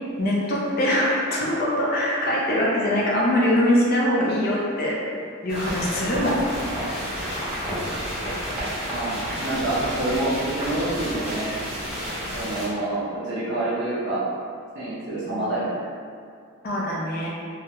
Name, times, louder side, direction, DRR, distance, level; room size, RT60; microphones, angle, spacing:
voice 1, 0.2-6.4 12.2-12.6 15.3-15.4 16.6-17.3, left 1 dB, 45° left, -5 dB, 0.4 m, -23 dB
sound 1, 5.5-12.7, equal, 5° right, 0.8 m, -30 dB
voice 2, 8.9-11.5 12.3-14.2 14.7-15.8, right 2 dB, 55° right, -9 dB, 0.5 m, -27 dB
2.3 x 2.0 x 2.8 m, 2.3 s
head